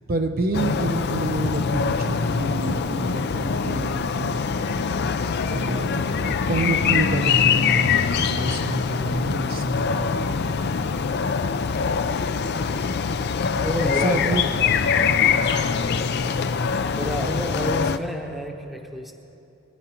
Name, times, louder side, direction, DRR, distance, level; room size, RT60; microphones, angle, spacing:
voice 1, 0.1-4.4 5.5-10.1 12.4-12.6 13.9-14.4, right 2 dB, 40° right, 5 dB, 0.6 m, -28 dB
sound 1, 0.5-18.0, left 6 dB, 50° left, 0.4 m, -23 dB
voice 2, 13.6-14.8 16.9-19.1, equal, ahead, 2 dB, 0.9 m, -29 dB
21.5 x 10.0 x 4.4 m, 2.8 s
head